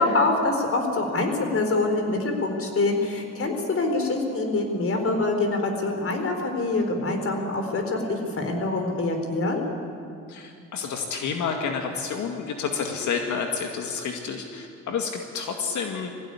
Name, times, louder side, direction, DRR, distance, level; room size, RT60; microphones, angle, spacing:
voice 1, 0.0-9.6, left 2 dB, 45° left, 4 dB, 4.5 m, -25 dB
voice 2, 10.3-16.1, left 6 dB, 75° left, 3 dB, 2.1 m, -29 dB
21.0 x 16.0 x 9.9 m, 2.4 s
cardioid pair, 90°, 30 cm